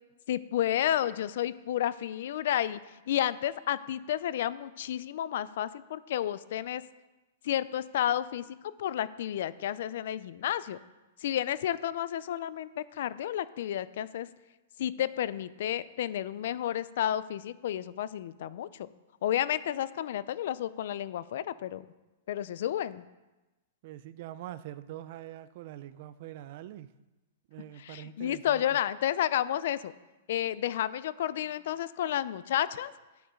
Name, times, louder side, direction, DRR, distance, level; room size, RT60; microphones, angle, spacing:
voice 1, 0.3-2.8 3.1-6.8 7.4-8.4 8.8-10.8 11.2-14.3 14.8-18.9 19.2-21.8 22.3-23.0 27.8-29.9 30.3-32.9, left 11 dB, 50° left, 16 dB, 0.4 m, -31 dB
voice 2, 23.8-26.9 27.5-28.8, right 13 dB, 40° right, 15 dB, 0.4 m, -44 dB
10.5 x 6.9 x 5.1 m, 1.1 s
supercardioid pair, 175°, 0 cm